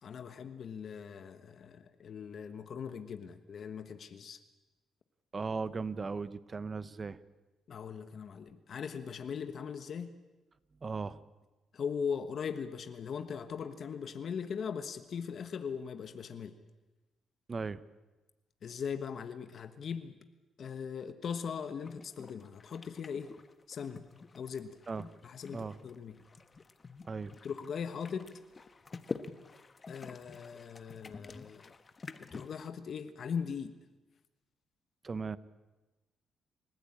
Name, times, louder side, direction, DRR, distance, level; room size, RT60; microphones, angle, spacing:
voice 1, 0.0-4.4 7.7-10.1 11.7-16.5 18.6-20.2 20.6-23.3 23.7-24.1 24.3-24.8 25.2-26.2 27.4-28.3 29.9-31.6 32.2-33.7, left 6 dB, 55° left, 10 dB, 1.2 m, -40 dB
voice 2, 5.3-7.2 10.8-11.2 17.5-17.8 24.9-25.0 25.5-25.8 27.1-27.3 35.0-35.4, right 4 dB, 35° right, 16 dB, 0.9 m, -37 dB
sound 1, 21.8-32.7, left 4 dB, 30° left, 1.3 m, -47 dB
28.5 x 15.0 x 8.8 m, 1.2 s
cardioid pair, 90°, 0 cm